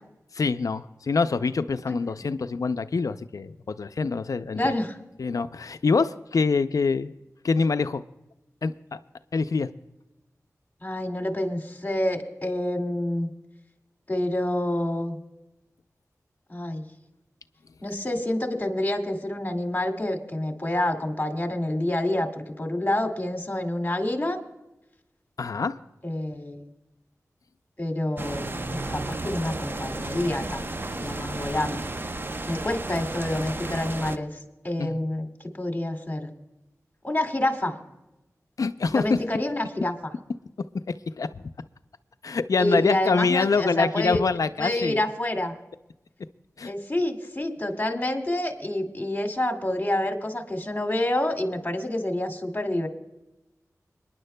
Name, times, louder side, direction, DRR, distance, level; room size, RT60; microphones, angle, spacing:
voice 1, 0.3-4.6 5.2-7.1 7.4-8.0 8.6-9.0 9.3-9.7 25.4-25.8 34.8-35.0 38.6-39.2 41.2-41.5 42.2-45.0 46.6-46.7, left 4 dB, 75° left, 12 dB, 0.5 m, -25 dB
voice 2, 4.6-4.9 10.8-13.3 14.1-15.2 16.5-16.8 17.8-24.4 26.0-26.7 27.8-31.9 32.5-34.3 34.6-35.3 35.5-36.3 37.0-37.8 38.9-39.9 42.6-44.2 44.6-45.6 46.6-52.9, left 1 dB, 30° left, 4 dB, 2.2 m, -28 dB
sound 1, 28.2-34.2, right 2 dB, 35° right, 0.6 m, -33 dB
26.5 x 10.5 x 2.2 m, 0.94 s
cardioid pair, 45°, 6 cm